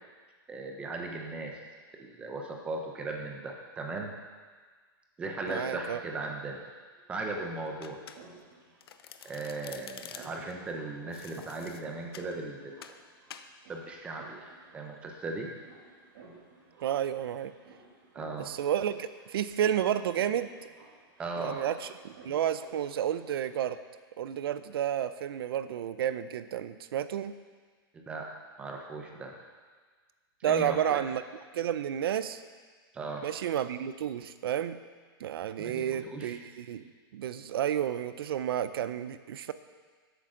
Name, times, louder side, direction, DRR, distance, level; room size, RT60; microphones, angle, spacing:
voice 1, 0.5-1.6 2.0-4.1 5.2-6.6 7.1-8.0 9.2-12.8 13.7-15.5 18.1-18.5 21.2-21.6 27.9-28.2 28.6-29.3 30.5-31.0 32.9-33.2 35.6-36.3, right 2 dB, 10° right, 1 dB, 0.8 m, -37 dB
voice 2, 5.5-6.0 16.8-17.5 18.4-20.5 21.4-23.8 24.2-27.3 30.4-31.2 31.5-32.4 33.2-34.8 35.2-36.8 37.1-39.5, right 10 dB, 75° right, 13 dB, 0.6 m, -31 dB
sound 1, 6.9-23.6, right 3 dB, 50° right, 2.4 m, -56 dB
Domestic sounds home sounds, 7.8-8.5 8.8-10.5 11.1-12.3 12.8-13.0 13.3-13.5, left 8 dB, 80° left, 0.7 m, -48 dB
12.5 x 8.0 x 3.8 m, 1.5 s
supercardioid pair, 180°, 13 cm